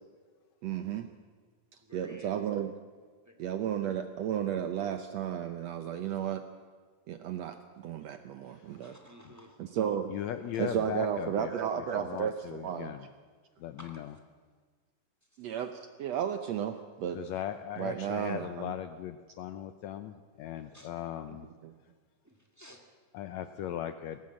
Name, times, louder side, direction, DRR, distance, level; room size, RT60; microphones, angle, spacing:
voice 1, 0.6-1.1 1.9-2.7 3.4-6.4 7.1-8.9 9.6-10.1 10.6-12.9 15.4-17.2 17.8-18.7 21.6-21.7, right 9 dB, 70° right, 8 dB, 1.6 m, -33 dB
voice 2, 1.8-2.3 3.2-3.4 8.8-9.7 10.5-10.6 13.8-14.1 15.4-15.5 20.7-20.9 22.2-22.8, equal, 5° right, 3 dB, 1.3 m, -54 dB
voice 3, 10.1-13.0 13.6-14.1 17.1-21.5 23.1-24.2, left 10 dB, 75° left, 10 dB, 1.7 m, -38 dB
20.0 x 18.0 x 7.5 m, 1.5 s
omnidirectional pair, 3.8 m